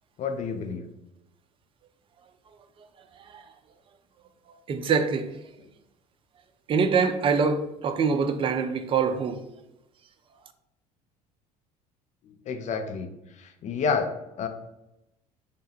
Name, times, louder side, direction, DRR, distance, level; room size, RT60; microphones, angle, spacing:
voice 1, 0.2-0.8 12.3-13.1 13.4-14.1 14.4-14.5, left 5 dB, 35° left, 0.5 m, -29 dB
voice 2, 4.7-5.3 6.7-9.4, right 5 dB, 25° right, 0.3 m, -24 dB
3.2 x 2.1 x 3.4 m
figure-of-eight pair, 60°, 20 cm